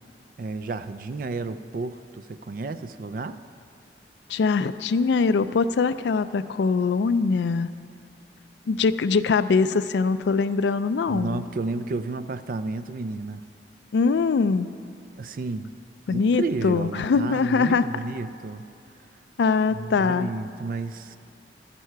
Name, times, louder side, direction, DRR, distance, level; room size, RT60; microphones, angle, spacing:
voice 1, 0.4-3.4 11.1-13.4 15.2-15.7 16.1-18.6 19.7-21.2, right 3 dB, 50° right, 12 dB, 0.4 m, -32 dB
voice 2, 4.3-7.7 8.7-11.4 13.9-14.7 16.1-17.9 19.4-20.3, left 4 dB, 75° left, 13 dB, 0.4 m, -22 dB
11.5 x 11.0 x 4.6 m, 2.5 s
head